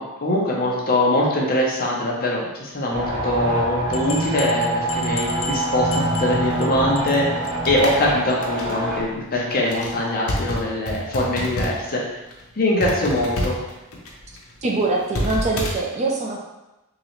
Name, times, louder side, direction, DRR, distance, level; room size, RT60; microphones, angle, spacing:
voice 1, 0.0-7.3 7.7-12.0 12.6-13.6, left 1 dB, 45° left, -3 dB, 0.8 m, -22 dB
sound 1, 2.9-9.0, right 1 dB, 80° right, 1.1 m, -25 dB
sound 2, 3.9-6.7 6.9-7.2 7.5-7.6 7.9-8.0 8.3-8.4, left 3 dB, 30° left, 0.3 m, -34 dB
sound 3, 6.3-11.9 12.2-12.4 12.8-15.7, left 1 dB, 80° left, 0.8 m, -29 dB
voice 2, 14.6-16.5, right 3 dB, 30° right, -1 dB, 0.5 m, -23 dB
3.8 x 2.9 x 3.1 m, 1.0 s
head